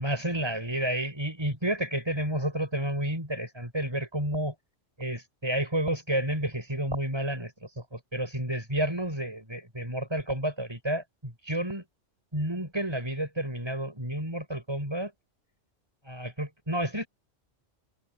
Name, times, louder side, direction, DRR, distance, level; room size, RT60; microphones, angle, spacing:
voice 1, 0.0-4.6 5.0-11.8 12.3-15.1 16.0-17.1, right 1 dB, 20° right, 7.0 m, -30 dB
omnidirectional pair, 1.2 m